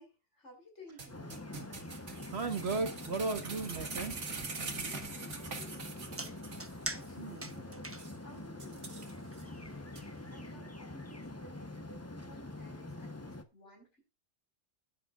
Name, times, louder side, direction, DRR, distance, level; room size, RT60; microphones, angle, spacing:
voice 1, 0.0-1.4 4.8-14.0, equal, 75° left, 5.2 m, -57 dB
sound 1, 1.0-6.7 7.0-7.1 7.5-7.6 8.0-8.1 8.6-9.4 9.9-10.0, right 4 dB, 85° right, 2.1 m, -43 dB
sound 2, 1.1-13.4, left 2 dB, 15° left, 0.9 m, -45 dB
sound 3, 2.3-10.6, right 2 dB, 15° right, 0.8 m, -48 dB
voice 2, 2.3-4.4 7.2-7.5, right 3 dB, 60° right, 1.8 m, -36 dB
21.0 x 7.8 x 2.5 m
omnidirectional pair, 1.2 m